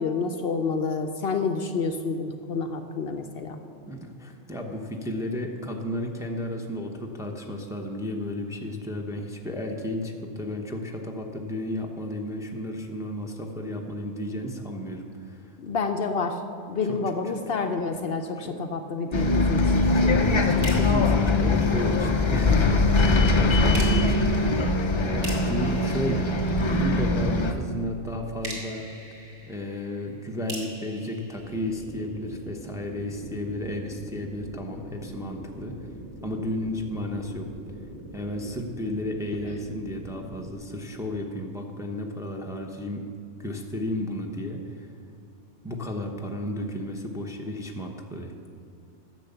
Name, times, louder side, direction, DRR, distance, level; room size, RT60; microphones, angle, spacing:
voice 1, 0.0-3.6 15.6-16.4 16.7-19.8 39.4-39.6, left 4 dB, 60° left, 6 dB, 0.8 m, -29 dB
voice 2, 3.9-15.5 16.9-17.0 18.4-18.5 19.6-24.7 25.1-28.8 29.5-35.7 36.2-37.5 38.1-43.0 43.4-44.9 45.6-48.3, left 1 dB, 5° right, 1 dB, 0.8 m, -33 dB
Bus, 19.1-27.5, left 2 dB, 35° left, 0.5 m, -22 dB
sound 1, 20.6-22.3 23.7-27.1 28.4-32.3, right 1 dB, 65° right, 2.2 m, -43 dB
sound 2, 31.4-40.5, right 1 dB, 90° right, 1.7 m, -42 dB
10.5 x 7.2 x 6.8 m, 2.5 s
omnidirectional pair, 1.2 m